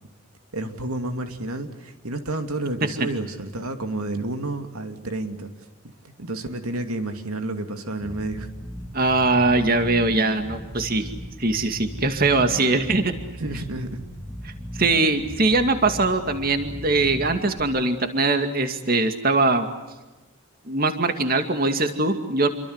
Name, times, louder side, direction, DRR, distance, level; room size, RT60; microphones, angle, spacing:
voice 1, 0.5-5.5 5.8-8.5 13.4-14.0, right 2 dB, 85° right, 7 dB, 2.7 m, -30 dB
Bass guitar, 8.0-17.6, equal, 10° left, 3.1 m, -37 dB
voice 2, 8.9-11.1 11.4-13.1 14.4-19.7 20.7-22.5, right 3 dB, 40° right, 7 dB, 2.4 m, -21 dB
28.5 x 24.5 x 8.2 m, 1.1 s
head